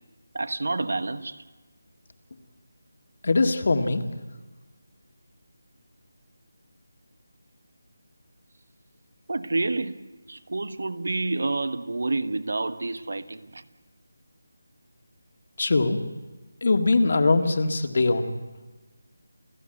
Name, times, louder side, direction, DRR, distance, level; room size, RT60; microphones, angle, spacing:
voice 1, 0.3-1.4 9.3-10.0 10.3-13.7, right 2 dB, 65° right, 1.2 m, -29 dB
voice 2, 3.2-4.0 15.6-16.0 16.6-18.3, left 3 dB, 50° left, 1.8 m, -22 dB
29.0 x 15.0 x 8.0 m
figure-of-eight pair, 175°, 0 cm